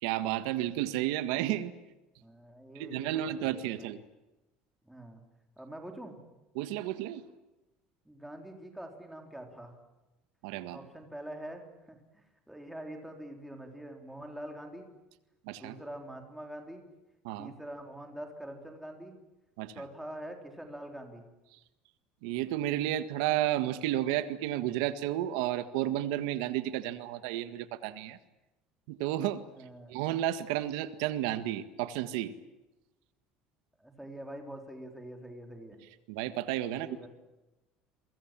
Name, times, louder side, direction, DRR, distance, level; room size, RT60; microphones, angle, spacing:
voice 1, 0.0-1.7 2.8-4.0 6.6-7.2 10.4-10.8 15.5-15.8 17.3-17.5 19.6-19.8 22.2-28.2 28.9-29.4 29.9-32.3 36.1-37.1, right 13 dB, 90° right, 11 dB, 1.7 m, -32 dB
voice 2, 2.2-3.9 4.8-5.2 5.6-6.2 8.1-9.8 10.7-14.9 15.5-16.9 17.4-19.2 19.7-21.3 29.5-30.0 33.8-35.8 36.7-37.1, right 1 dB, 5° right, 3 dB, 3.6 m, -45 dB
29.5 x 23.5 x 7.6 m, 1.0 s
cardioid pair, 175°, 3 cm